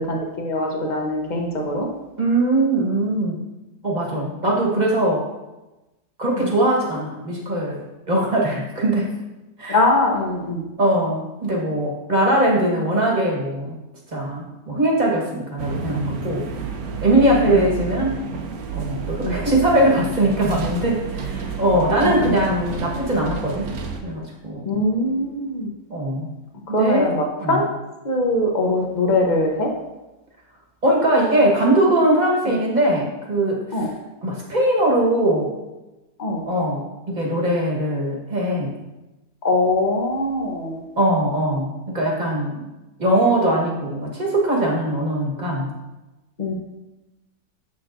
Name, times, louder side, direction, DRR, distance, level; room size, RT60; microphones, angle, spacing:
voice 1, 0.0-1.9 6.4-6.5 9.7-10.6 17.5-17.6 19.2-19.4 22.0-22.4 24.6-25.7 26.7-27.7 28.0-29.7 33.7-33.9 36.2-36.4 39.4-40.8 46.4-46.5, left 2 dB, 35° left, 1 dB, 0.9 m, -22 dB
voice 2, 2.2-3.4 3.8-5.3 6.2-9.1 9.6-9.8 10.8-13.8 14.1-16.5 17.0-18.2 18.7-23.7 24.0-24.8 25.9-26.3 26.7-27.1 27.4-27.6 30.8-33.9 34.2-35.6 36.4-38.7 41.0-42.7 43.0-45.7, right 1 dB, 30° right, -2 dB, 1.4 m, -21 dB
sound 1, 15.6-24.0, right 5 dB, 70° right, 1.2 m, -30 dB
7.8 x 7.0 x 2.6 m, 1.0 s
omnidirectional pair, 1.6 m